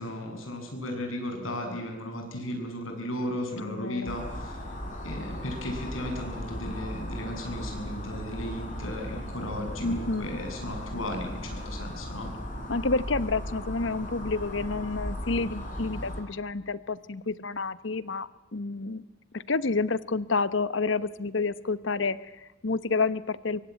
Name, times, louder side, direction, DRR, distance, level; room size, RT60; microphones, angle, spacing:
voice 1, 0.0-4.6 5.0-12.3, left 1 dB, 90° left, 3 dB, 7.5 m, -35 dB
voice 2, 3.6-4.2 9.8-10.4 12.7-19.0 19.3-23.6, left 3 dB, 65° left, 16 dB, 1.0 m, -29 dB
sound 1, 4.0-16.2, equal, 40° left, 5.2 m, -37 dB
24.5 x 23.5 x 9.6 m, 0.98 s
head